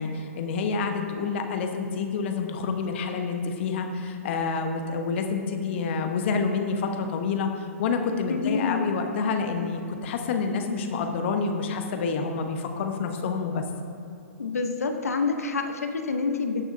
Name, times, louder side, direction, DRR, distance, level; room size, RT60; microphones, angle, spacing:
voice 1, 0.0-13.6, left 5 dB, 50° left, 5 dB, 1.1 m, -28 dB
voice 2, 8.3-8.9 14.4-16.7, left 4 dB, 80° left, 6 dB, 0.9 m, -27 dB
16.5 x 6.2 x 2.7 m, 2.5 s
hypercardioid pair, 120°, 8 cm